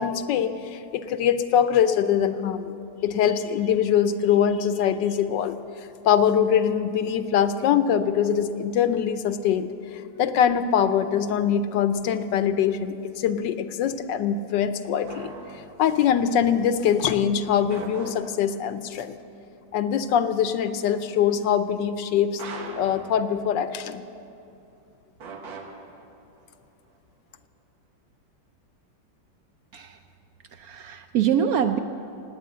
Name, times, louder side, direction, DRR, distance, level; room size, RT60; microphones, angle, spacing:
voice 1, 0.0-2.7 3.0-5.6 6.0-19.2 19.7-22.4 22.8-24.0, left 8 dB, 80° left, 11 dB, 1.3 m, -23 dB
sound 1, 15.1-16.1 17.7-18.8 22.4-23.9 25.2-26.5, right 4 dB, 90° right, 2.1 m, -41 dB
voice 2, 30.5-31.8, right 8 dB, 70° right, 7 dB, 0.9 m, -24 dB
18.0 x 9.1 x 7.5 m, 2.6 s
omnidirectional pair, 2.0 m